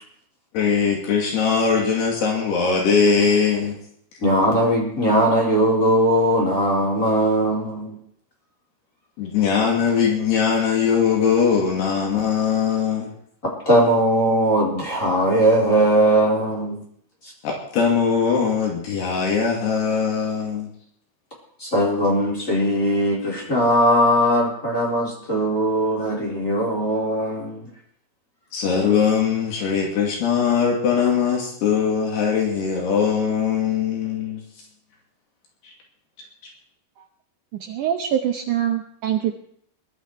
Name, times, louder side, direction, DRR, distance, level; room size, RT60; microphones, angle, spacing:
voice 1, 0.5-3.8 9.2-13.1 17.4-20.7 28.5-34.4, left 6 dB, 75° left, -1 dB, 4.5 m, -21 dB
voice 2, 4.2-8.0 13.4-16.8 21.6-27.7, right 1 dB, 20° left, -3 dB, 3.9 m, -19 dB
voice 3, 37.6-39.3, right 10 dB, 80° right, 4 dB, 1.8 m, -24 dB
21.0 x 12.0 x 4.7 m, 0.67 s
omnidirectional pair, 4.8 m